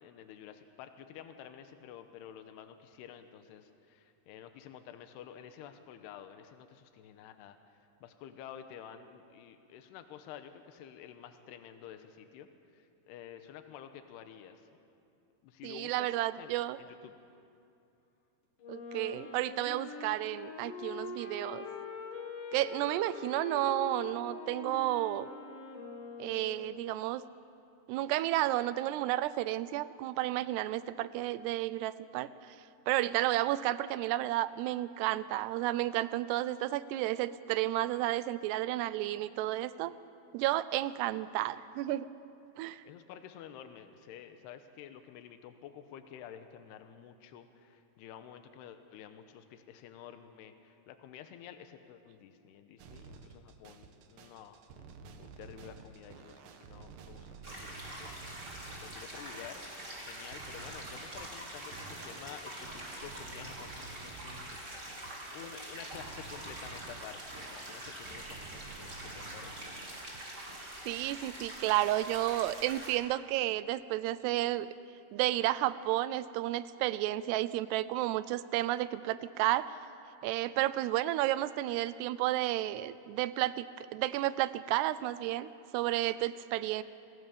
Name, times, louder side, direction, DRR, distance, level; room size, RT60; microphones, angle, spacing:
voice 1, 0.0-7.6 8.0-12.5 12.7-14.6 15.4-17.1 42.8-59.6 60.1-69.6, left 9 dB, 85° left, 8 dB, 3.0 m, -50 dB
voice 2, 15.6-16.8 18.7-21.7 22.5-25.3 26.2-27.2 27.9-32.6 32.9-39.9 40.3-42.1 42.6-42.8 70.9-74.7 75.1-79.7 80.2-86.8, right 15 dB, 90° right, 16 dB, 2.8 m, -32 dB
Wind instrument woodwind instrument, 18.6-27.0, left 4 dB, 60° left, 3.9 m, -44 dB
sound 1, 52.8-70.6, right 5 dB, 70° right, 2.5 m, -51 dB
sound 2, 57.4-72.9, right 1 dB, 20° right, 3.6 m, -45 dB
28.0 x 17.5 x 7.0 m, 2.6 s
omnidirectional pair, 4.7 m